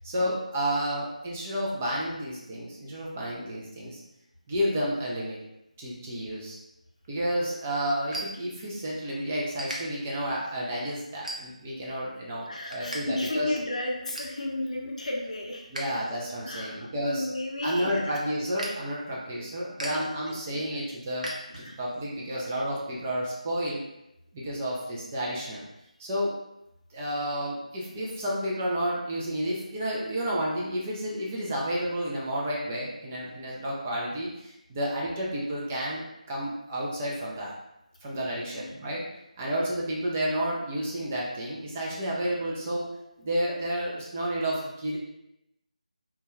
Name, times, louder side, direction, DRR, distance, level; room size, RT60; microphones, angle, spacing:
voice 1, 0.0-4.0 4.5-5.4 5.8-6.6 7.1-13.6 15.7-17.3 17.6-23.8 24.3-25.6 26.0-26.4 26.9-37.5 38.0-39.0 39.4-42.9 43.2-45.0, equal, 15° right, -4 dB, 0.3 m, -31 dB
sound 1, 7.0-9.0 9.3-9.8 10.3-10.6 11.1-11.8 12.2-13.0 13.3-13.4 13.8-14.4 14.9-15.8 16.2-22.0, right 1 dB, 65° right, 0.7 m, -40 dB
voice 2, 12.5-16.0 16.4-18.0 19.9-20.8 21.6-21.8 22.3-22.5 22.7-22.8 38.5-38.7, left 1 dB, 60° left, -1 dB, 0.6 m, -34 dB
2.2 x 2.2 x 3.0 m, 0.88 s
figure-of-eight pair, 160°, 4 cm